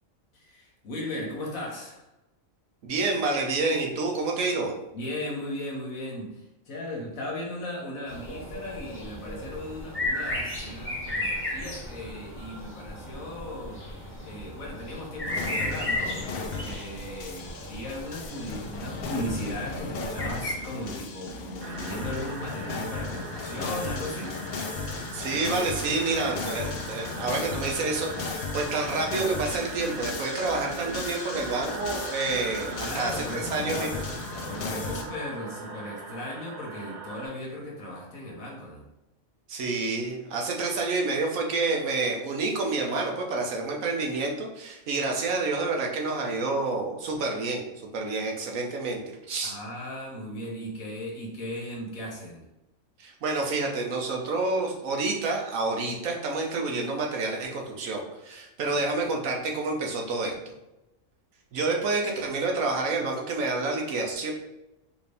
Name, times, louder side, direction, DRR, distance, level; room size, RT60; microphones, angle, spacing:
voice 1, 0.3-2.0 4.9-13.8 14.2-24.4 32.8-34.0 34.5-38.8 49.4-52.4 58.7-58.8, left 1 dB, 90° left, -3 dB, 1.4 m, -37 dB
voice 2, 2.8-4.7 25.1-33.9 39.5-47.6 47.9-49.6 53.0-60.3 61.5-64.3, right 3 dB, 85° right, 0 dB, 1.3 m, -28 dB
sound 1, 8.1-20.5, left 1 dB, 10° left, 0.9 m, -35 dB
sound 2, 15.3-35.0, left 4 dB, 60° left, 0.7 m, -36 dB
sound 3, 21.6-37.3, right 3 dB, 45° right, 1.1 m, -40 dB
4.7 x 2.7 x 3.3 m, 0.94 s
omnidirectional pair, 1.4 m